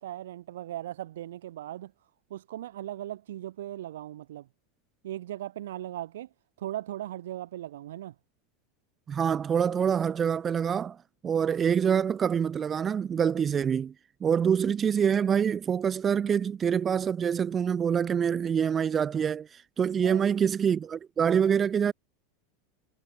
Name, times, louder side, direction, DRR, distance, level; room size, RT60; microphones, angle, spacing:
voice 1, 0.0-1.9 2.3-4.5 5.0-6.3 6.6-8.1 20.0-20.2, right 13 dB, 80° right, 0.7 m, -38 dB
voice 2, 9.1-11.0 11.2-13.9 14.2-21.9, right 7 dB, 25° right, 0.3 m, -26 dB
hypercardioid pair, 110°, 0 cm